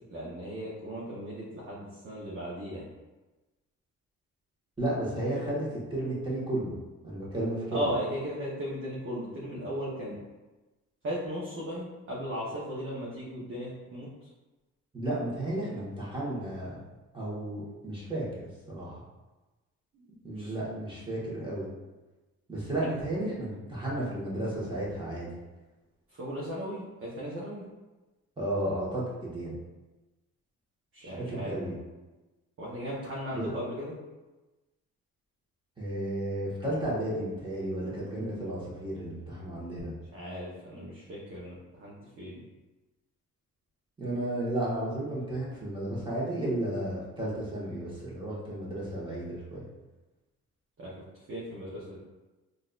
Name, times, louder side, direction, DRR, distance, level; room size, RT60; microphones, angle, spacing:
voice 1, 0.1-2.9 7.7-10.2 11.0-14.1 19.9-20.1 20.4-20.5 22.8-22.9 26.1-27.7 30.9-31.6 32.6-34.0 40.1-42.4 50.8-50.9 51.3-52.0, equal, 45° right, -6 dB, 0.9 m, -36 dB
voice 2, 4.8-6.7 7.0-7.9 14.9-16.8 17.1-19.0 20.2-21.7 22.5-25.3 28.4-29.6 31.0-31.7 33.3-33.5 35.8-39.9 44.0-49.6, right 1 dB, 15° right, -7 dB, 1.4 m, -33 dB
3.9 x 2.6 x 2.4 m, 1.1 s
cardioid pair, 90°, 30 cm